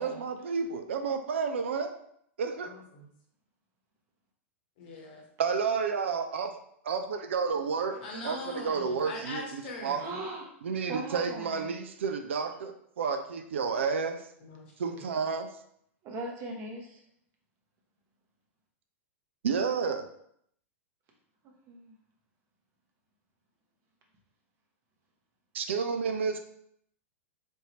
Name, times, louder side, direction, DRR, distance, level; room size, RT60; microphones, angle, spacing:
voice 1, 0.0-1.9 2.4-2.7 5.4-6.6 6.8-8.0 8.2-10.0 10.6-14.3 14.8-15.5 19.4-20.0 25.5-26.4, right 5 dB, 65° right, 7 dB, 0.3 m, -31 dB
voice 2, 2.6-3.1 4.8-5.3 7.9-10.2 14.4-15.1, left 2 dB, 50° left, 0 dB, 1.0 m, -42 dB
voice 3, 10.0-10.5 10.9-11.8 16.0-17.0 21.7-22.0, right 2 dB, 35° right, 1 dB, 0.8 m, -39 dB
3.5 x 2.7 x 2.9 m, 0.69 s
figure-of-eight pair, 95°, 7 cm